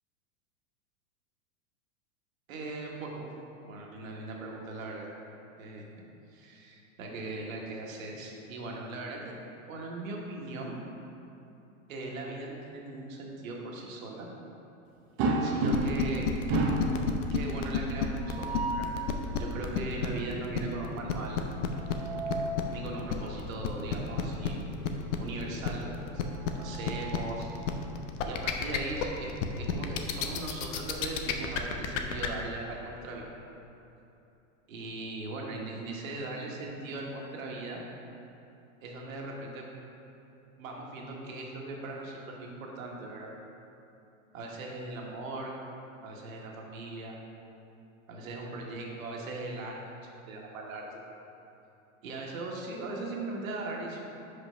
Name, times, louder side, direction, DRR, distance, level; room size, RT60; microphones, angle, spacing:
voice 1, 2.5-3.3 3.7-5.1 5.6-5.8 6.3-9.3 9.7-10.8 11.9-14.3 15.4-16.3 17.3-18.8 19.4-21.4 22.7-24.7 25.2-25.9 26.2-27.5 28.2-33.2 34.7-37.8 38.8-39.7 40.6-43.3 44.3-45.5 46.0-47.2 48.1-49.8 50.3-51.0 52.0-54.0, right 2 dB, 80° right, -1 dB, 1.5 m, -39 dB
sound 1, 15.2-16.1 16.5-17.0 18.2-19.0 21.6-22.6 24.1-24.2 24.6-24.7 26.2-27.5, right 2 dB, 30° right, 0.6 m, -31 dB
sound 2, 15.7-32.3, left 7 dB, 65° left, 0.7 m, -30 dB
5.3 x 5.2 x 5.6 m, 2.9 s
supercardioid pair, 150°, 40 cm